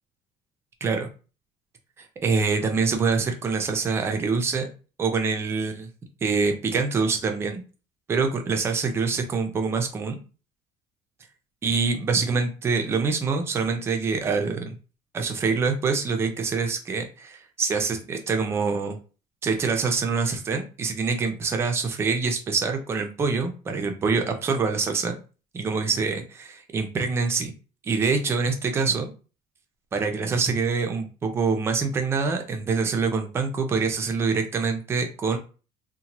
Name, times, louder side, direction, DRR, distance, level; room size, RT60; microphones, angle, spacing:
voice 1, 2.0-4.7 5.0-5.9 6.2-7.6 8.1-10.2 11.6-14.8 15.1-19.0 19.4-25.2 25.5-27.5 27.8-29.1 29.9-35.4, right 4 dB, 20° right, 5 dB, 0.4 m, -25 dB
2.8 x 2.1 x 2.8 m, 0.35 s
cardioid pair, 180°, 13 cm